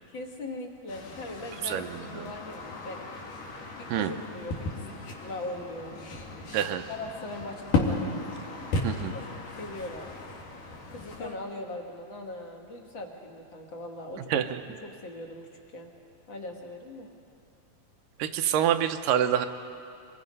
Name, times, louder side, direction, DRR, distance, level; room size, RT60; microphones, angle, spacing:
voice 1, 0.1-3.0 3.8-6.0 6.9-8.1 9.1-9.2 9.5-10.1 10.9-14.4 14.8-15.4 15.7-15.9 16.3-17.1, left 2 dB, 45° left, 2 dB, 1.8 m, -40 dB
sound 1, 0.9-11.4, left 3 dB, 75° left, 3.6 m, -35 dB
voice 2, 8.8-9.1 14.3-14.6 18.2-19.5, right 10 dB, 85° right, 8 dB, 2.3 m, -26 dB
26.0 x 22.0 x 5.4 m, 2.6 s
omnidirectional pair, 3.8 m